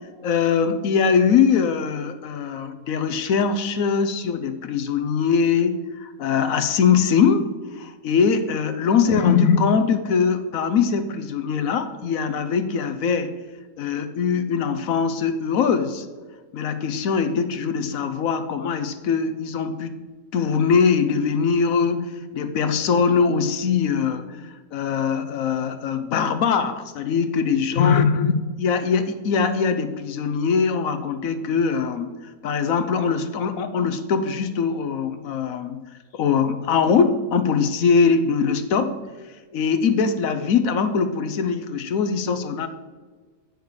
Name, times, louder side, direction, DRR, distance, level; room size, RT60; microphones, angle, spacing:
voice 1, 0.2-13.3 13.8-16.1 16.5-19.9 20.3-28.3 28.6-35.8 36.1-39.0 39.5-42.7, left 6 dB, 75° left, 9 dB, 1.1 m, -22 dB
8.3 x 6.4 x 4.7 m, 1.4 s
omnidirectional pair, 1.5 m